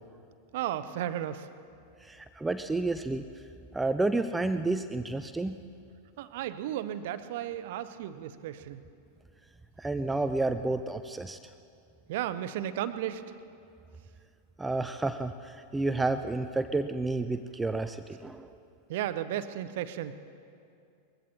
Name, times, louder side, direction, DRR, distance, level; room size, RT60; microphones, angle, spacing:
voice 1, 0.5-1.5 6.2-8.8 12.1-13.2 18.9-20.2, right 11 dB, 50° right, 12 dB, 0.7 m, -34 dB
voice 2, 2.0-3.2 3.7-5.6 9.8-11.4 14.6-18.5, right 2 dB, 10° right, 9 dB, 0.5 m, -30 dB
21.0 x 16.0 x 4.2 m, 2.4 s
figure-of-eight pair, 90°, 0 cm